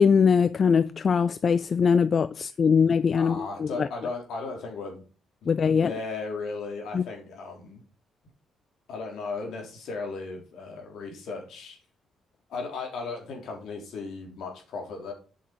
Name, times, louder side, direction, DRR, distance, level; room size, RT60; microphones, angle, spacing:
voice 1, 0.0-3.9 5.5-5.9 6.9-7.0, left 6 dB, 45° left, 0.4 m, -22 dB
voice 2, 3.2-5.0 5.4-7.8 8.9-11.8 12.5-15.1, left 4 dB, 75° left, 3.6 m, -36 dB
8.5 x 6.5 x 5.0 m
cardioid pair, 90°, 0 cm